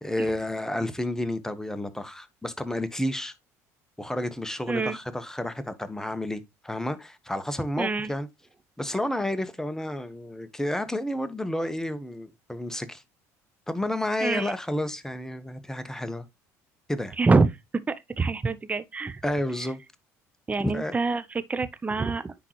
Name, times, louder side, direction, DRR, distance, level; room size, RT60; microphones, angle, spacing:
voice 1, 0.0-3.3 4.0-8.3 8.8-13.0 13.7-16.3 16.9-17.2 19.2-19.8 20.6-20.9, left 1 dB, 5° left, 1.2 m, -31 dB
voice 2, 4.7-5.0 7.8-8.1 14.2-14.5 17.2-17.5 17.9-19.2 20.5-22.3, right 3 dB, 20° right, 0.6 m, -25 dB
9.9 x 3.9 x 3.1 m
hypercardioid pair, 70°, 8 cm